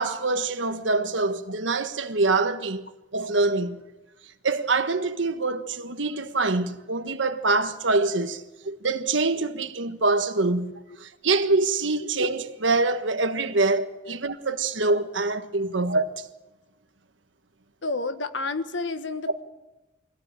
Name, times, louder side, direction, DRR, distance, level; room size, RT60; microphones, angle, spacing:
voice 1, 0.0-2.8 3.1-3.8 4.4-10.7 11.0-16.3, right 3 dB, 85° right, 1.5 m, -25 dB
voice 2, 17.8-19.4, left 3 dB, 85° left, 1.5 m, -31 dB
23.0 x 16.5 x 9.1 m
head